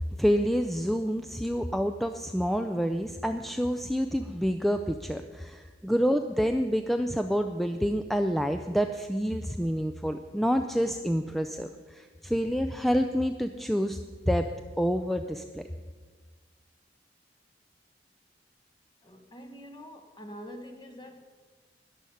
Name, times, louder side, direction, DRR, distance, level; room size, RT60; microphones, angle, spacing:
voice 1, 0.2-14.0 14.3-14.5 14.8-15.6, equal, ahead, 6 dB, 0.4 m, -28 dB
voice 2, 19.0-21.2, equal, 25° left, 6 dB, 1.2 m, -45 dB
14.0 x 10.5 x 5.6 m, 1.4 s
head